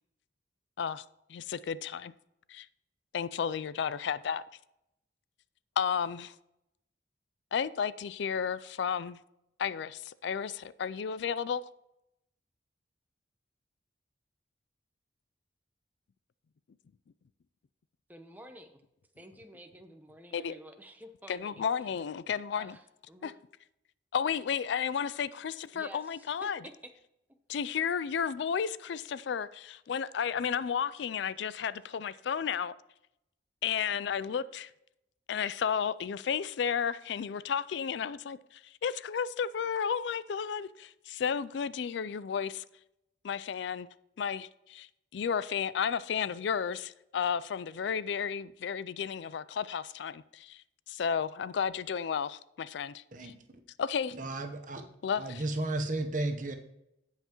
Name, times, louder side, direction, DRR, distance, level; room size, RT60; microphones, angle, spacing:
voice 1, 1.3-2.1 2.5-2.7 3.1-4.4 5.8-6.3 7.5-9.2 9.6-11.6 20.3-20.5 21.3-22.8 23.2-23.3 24.1-26.6 27.5-32.7 33.6-34.7 35.3-42.6 43.2-43.9 44.2-44.9 45.1-53.3 53.8-54.1 55.0-55.2, left 7 dB, 70° left, 0.3 m, -33 dB
voice 2, 18.1-18.8 19.1-22.0 22.5-23.3 25.7-26.9, right 1 dB, 10° right, 0.7 m, -51 dB
voice 3, 54.1-54.8 55.1-56.5, right 2 dB, 45° right, 0.9 m, -33 dB
17.0 x 5.7 x 3.0 m
head